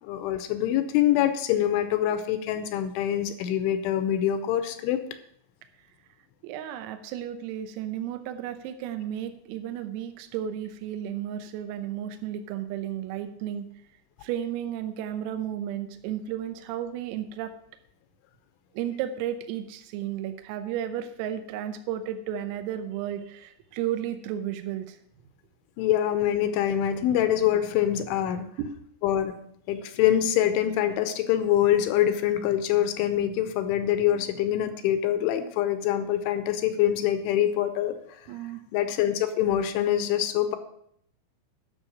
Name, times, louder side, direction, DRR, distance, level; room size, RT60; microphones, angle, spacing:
voice 1, 0.0-5.0 25.8-28.5 29.0-29.4 29.7-37.9 38.7-40.6, left 11 dB, 85° left, 10 dB, 3.0 m, -25 dB
voice 2, 6.4-13.7 14.2-17.5 18.8-25.0 28.6-28.7 38.3-38.6, right 10 dB, 90° right, 8 dB, 3.6 m, -33 dB
12.0 x 6.4 x 7.5 m, 0.69 s
omnidirectional pair, 5.9 m